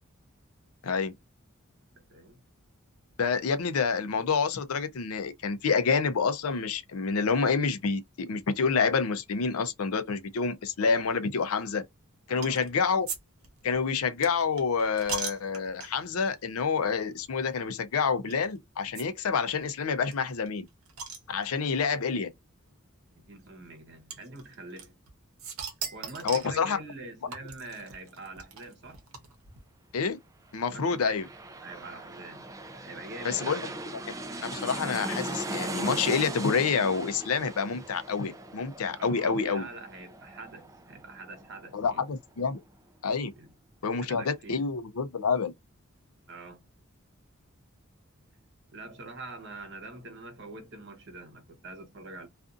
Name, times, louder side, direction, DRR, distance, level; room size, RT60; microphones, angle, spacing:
voice 1, 0.8-1.1 3.2-11.8 12.3-13.1 13.6-20.7 21.3-22.3 26.2-26.8 29.9-30.2 30.5-31.3 33.2-33.6 34.5-39.7 41.7-42.6 43.0-43.3 43.8-45.5, left 5 dB, 80° left, 0.5 m, -28 dB
voice 2, 2.1-2.4 12.3-12.7 23.1-24.9 25.9-29.0 30.7-31.2 31.6-32.5 32.8-33.7 39.0-42.0 43.3-43.5 43.8-44.6 46.3-46.6 48.7-52.3, right 2 dB, 55° right, 0.9 m, -45 dB
sound 1, 12.4-12.7 13.1-13.2 13.4-16.1 16.8-16.9 17.2-17.3 18.3-18.4 18.9-19.0 19.3-19.4 19.6-19.7 20.1-21.8 22.7-22.8 24.1-25.1 25.4-26.6 27.3-29.6, right 5 dB, 80° right, 0.8 m, -39 dB
sound 2, 30.7-42.0 42.4-42.5, right 1 dB, 15° right, 0.4 m, -39 dB
2.5 x 2.4 x 2.4 m
head